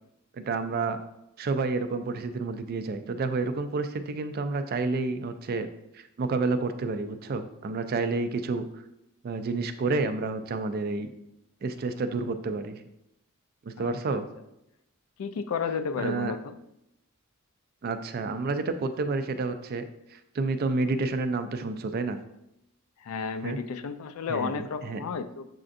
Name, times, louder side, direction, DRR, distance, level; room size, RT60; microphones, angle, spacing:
voice 1, 0.3-1.0 1.4-5.7 5.9-8.6 9.2-11.1 11.6-12.8 13.6-14.3 16.0-16.3 17.8-19.8 20.1-22.2 23.4-23.6 24.3-25.0, right 3 dB, 45° right, 9 dB, 0.3 m, -29 dB
voice 2, 13.8-14.2 15.2-16.6 23.0-25.5, left 5 dB, 70° left, 10 dB, 0.3 m, -32 dB
7.5 x 2.5 x 2.5 m, 0.84 s
head